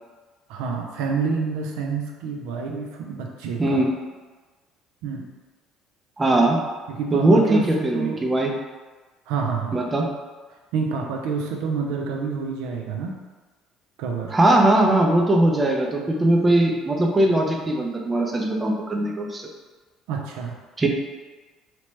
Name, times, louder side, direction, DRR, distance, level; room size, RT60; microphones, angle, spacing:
voice 1, 0.5-3.8 5.0-5.3 6.9-8.2 9.3-9.8 10.7-13.1 14.0-14.3 20.1-20.6, right 5 dB, 85° right, 1 dB, 0.3 m, -28 dB
voice 2, 6.2-6.6 7.1-8.5 9.7-10.1 14.3-19.5 20.8-20.9, right 1 dB, 20° right, 0 dB, 0.4 m, -20 dB
2.9 x 2.1 x 3.0 m, 1.3 s
supercardioid pair, 95°, 0 cm